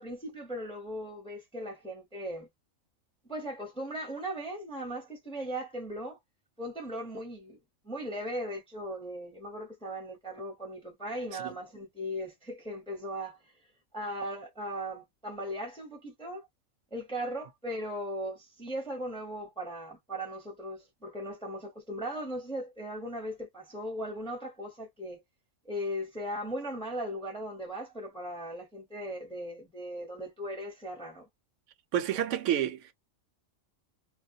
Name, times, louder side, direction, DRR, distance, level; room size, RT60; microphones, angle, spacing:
voice 1, 0.0-2.5 3.3-6.2 6.6-7.6 7.8-13.4 13.9-16.5 16.9-25.2 25.6-31.3, equal, 5° left, 0.7 m, -38 dB
voice 2, 31.9-32.9, right 10 dB, 70° right, 0.9 m, -29 dB
2.3 x 2.2 x 2.6 m
omnidirectional pair, 1.4 m